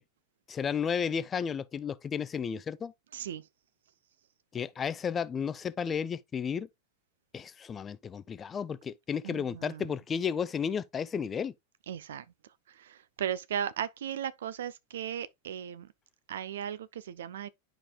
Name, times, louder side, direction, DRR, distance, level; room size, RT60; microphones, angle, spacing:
voice 1, 0.5-2.9 4.5-6.7 7.3-11.5, left 7 dB, 20° left, 0.4 m, -33 dB
voice 2, 3.1-3.4 9.2-9.9 11.9-12.3 12.7-15.9 16.3-17.5, right 9 dB, 60° right, 0.5 m, -36 dB
11.0 x 5.0 x 2.3 m
figure-of-eight pair, 90°, 0 cm